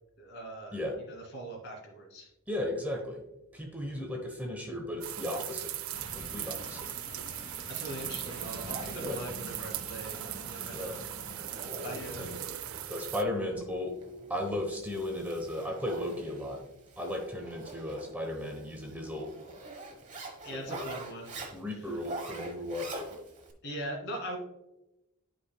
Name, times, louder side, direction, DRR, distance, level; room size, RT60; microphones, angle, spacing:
voice 1, 0.2-0.8 1.1-2.3 3.9-4.1 7.7-10.2 10.5-11.0 11.8-12.3 20.4-21.3 23.6-24.4, right 1 dB, 55° left, 0 dB, 2.2 m, -41 dB
voice 2, 2.5-3.2 3.5-5.7 6.1-6.9 9.0-9.2 10.7-11.0 12.1-12.4 12.9-13.9 14.3-16.6 17.0-19.3 20.5-20.9 21.5-23.0, left 1 dB, 10° right, 2 dB, 0.9 m, -35 dB
sound 1, 5.0-13.2, right 12 dB, 75° right, 0.4 m, -39 dB
sound 2, 5.9-12.4, left 2 dB, 25° left, 0.4 m, -47 dB
Zipper (clothing), 7.3-23.5, right 2 dB, 35° right, 1.1 m, -46 dB
11.5 x 5.0 x 2.2 m, 0.92 s
head